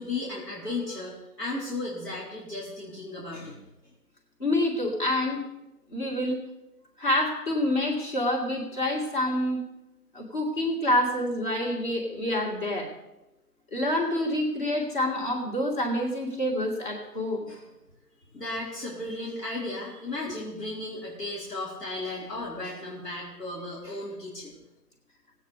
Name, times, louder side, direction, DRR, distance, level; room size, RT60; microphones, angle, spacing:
voice 1, 0.0-3.6 17.5-17.6 18.3-24.6, left 2 dB, 85° left, -6 dB, 4.3 m, -35 dB
voice 2, 4.4-5.4 5.9-6.4 7.0-9.6 10.1-12.9 13.7-17.5 20.3-20.4, left 1 dB, 30° left, -1 dB, 2.5 m, -27 dB
17.0 x 9.1 x 5.0 m, 0.97 s
figure-of-eight pair, 160°, 47 cm